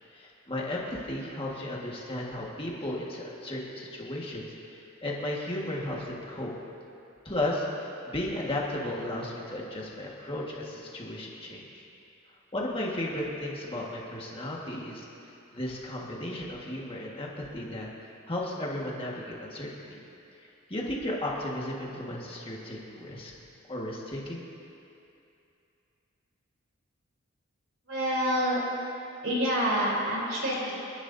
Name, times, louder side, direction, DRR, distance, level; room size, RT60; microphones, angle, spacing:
voice 1, 0.1-6.5 7.2-11.8 12.5-17.9 18.3-20.0 20.4-23.3 23.7-24.4, left 1 dB, 25° left, -4 dB, 1.7 m, -35 dB
voice 2, 27.9-28.6 29.2-30.8, equal, 55° right, -5 dB, 3.7 m, -27 dB
29.5 x 11.5 x 2.7 m, 2.7 s
head